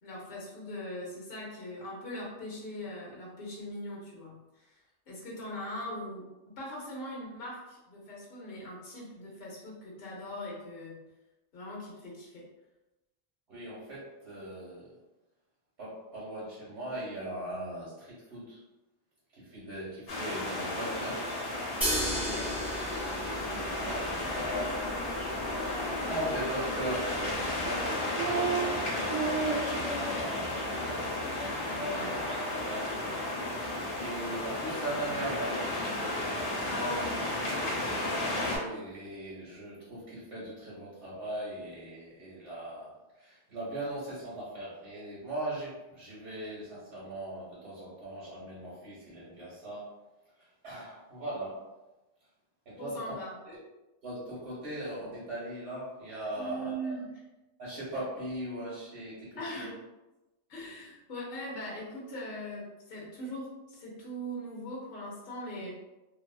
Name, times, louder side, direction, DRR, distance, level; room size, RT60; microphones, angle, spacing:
voice 1, 0.0-4.8 5.1-6.3 6.6-11.0 11.5-12.4 22.1-22.5 31.9-32.2 36.7-37.2 37.5-37.8 52.8-53.4 56.4-57.2 59.4-59.7 60.5-65.7, equal, 55° left, -4 dB, 0.9 m, -40 dB
voice 2, 13.5-14.9 15.8-18.6 19.3-21.3 23.3-25.0 25.8-31.0 31.6-32.1 32.5-33.0 33.9-37.0 38.5-49.9 50.4-51.6 52.6-53.1 53.5-53.6 54.0-56.9 57.6-59.7, right 1 dB, 70° right, -8 dB, 1.2 m, -39 dB
sound 1, 20.1-38.6, left 1 dB, 80° left, 1.0 m, -33 dB
sound 2, 21.8-27.8, equal, ahead, 0.7 m, -37 dB
sound 3, 28.2-28.7 29.1-30.3 30.6-30.7 31.1-31.5 31.7-32.6, right 4 dB, 50° right, 0.4 m, -33 dB
2.6 x 2.3 x 2.3 m, 1.0 s
omnidirectional pair, 1.2 m